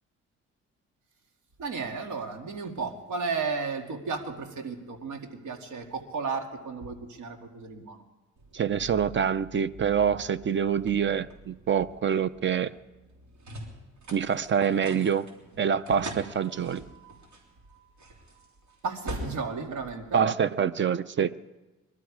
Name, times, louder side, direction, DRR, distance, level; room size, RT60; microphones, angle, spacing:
voice 1, 1.6-8.0 18.8-20.2, right 4 dB, 85° right, 2.0 m, -34 dB
sound 1, 8.4-20.7, right 1 dB, 70° right, 3.5 m, -44 dB
voice 2, 8.5-12.7 14.1-15.3 15.6-16.8 20.1-21.4, right 7 dB, 40° right, 0.6 m, -26 dB
23.0 x 12.5 x 4.8 m
cardioid pair, 90°, 30 cm